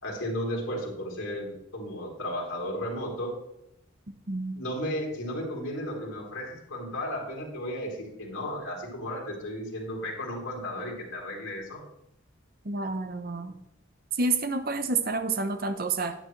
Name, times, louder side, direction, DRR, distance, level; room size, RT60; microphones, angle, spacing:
voice 1, 0.0-3.3 4.5-11.8, equal, 90° left, -2 dB, 3.6 m, -34 dB
voice 2, 12.6-13.5 14.2-16.1, right 3 dB, 45° right, 8 dB, 0.8 m, -29 dB
11.0 x 9.9 x 3.3 m, 0.81 s
head